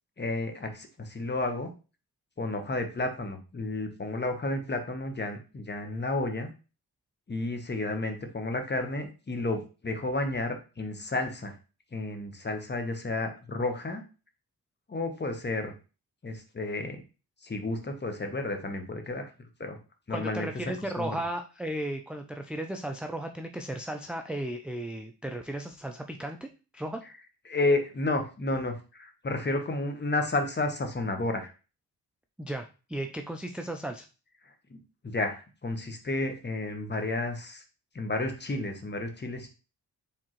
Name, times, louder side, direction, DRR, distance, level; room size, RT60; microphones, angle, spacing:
voice 1, 0.2-1.7 2.4-6.5 7.3-11.5 11.9-14.0 14.9-15.7 16.2-17.0 17.4-19.3 19.6-19.8 20.1-20.5 21.0-21.2 27.5-31.5 34.7-37.6 37.9-39.5, left 2 dB, 25° left, 5 dB, 1.0 m, -31 dB
voice 2, 20.1-26.5 26.7-27.0 32.4-34.1, right 1 dB, 5° right, 4 dB, 0.4 m, -35 dB
4.7 x 3.5 x 3.0 m, 0.33 s
cardioid pair, 80°, 39 cm